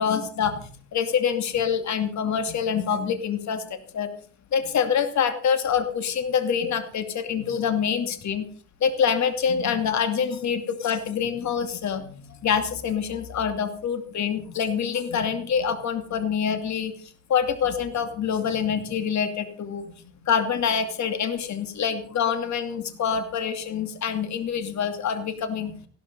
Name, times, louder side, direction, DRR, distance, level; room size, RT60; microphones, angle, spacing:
voice 1, 0.0-4.1 4.5-8.5 8.8-16.9 17.3-19.9 20.2-25.8, left 7 dB, 65° left, 9 dB, 2.5 m, -26 dB
16.0 x 13.0 x 5.4 m, 0.43 s
cardioid pair, 90°, 30 cm